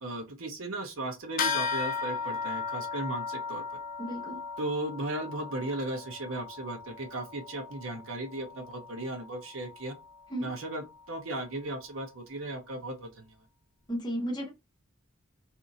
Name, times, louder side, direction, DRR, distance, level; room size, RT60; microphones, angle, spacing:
voice 1, 0.0-3.6 4.6-10.0 10.4-13.3, right 2 dB, 70° right, 0.8 m, -36 dB
sound 1, 1.4-11.2, left 5 dB, 45° left, 0.4 m, -37 dB
voice 2, 4.0-4.4 10.3-10.5 13.9-14.5, equal, 20° left, 0.9 m, -33 dB
2.7 x 2.6 x 3.8 m
head